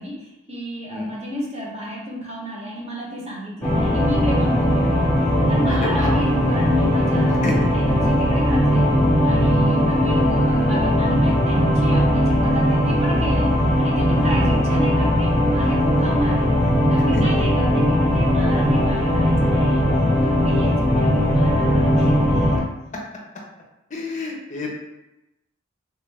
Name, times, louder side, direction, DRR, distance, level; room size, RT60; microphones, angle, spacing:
voice 1, 0.0-5.1 5.5-7.4 7.7-8.9 9.2-13.5 13.8-16.5 16.9-19.8 20.2-22.6, left 1 dB, 30° right, -4 dB, 0.8 m, -30 dB
sound 1, 3.6-22.6, equal, 10° left, 0.9 m, -19 dB
voice 2, 5.7-6.1 7.4-7.5 14.3-14.5 17.1-17.2 23.9-24.7, left 2 dB, 35° left, -2 dB, 0.6 m, -29 dB
3.4 x 2.4 x 3.2 m, 0.93 s
head